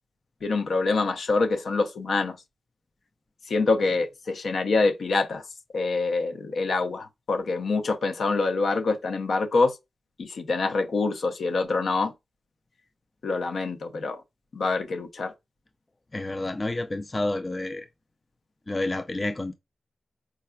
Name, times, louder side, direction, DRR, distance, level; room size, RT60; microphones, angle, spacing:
voice 1, 0.4-2.4 3.5-5.4 5.7-9.8 10.2-12.1 13.2-14.2 14.5-15.3, left 3 dB, 70° left, 0.6 m, -25 dB
voice 2, 16.1-17.9 18.7-19.5, left 2 dB, 25° left, 0.3 m, -29 dB
4.5 x 2.4 x 2.2 m
wide cardioid pair, 90°, 0 cm